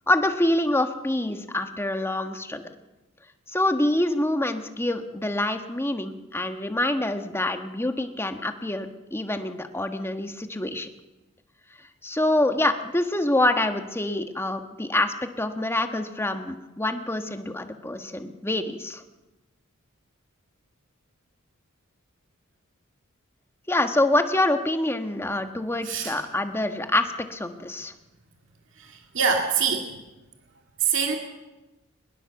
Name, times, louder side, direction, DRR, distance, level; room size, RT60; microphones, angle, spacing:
voice 1, 0.1-2.6 3.5-10.9 12.0-19.0 23.7-27.9, left 1 dB, 10° left, 7 dB, 1.3 m, -26 dB
voice 2, 25.8-26.2 28.8-30.0 30.8-31.2, right 6 dB, 65° right, 2 dB, 2.2 m, -25 dB
22.0 x 21.0 x 7.1 m, 1.1 s
head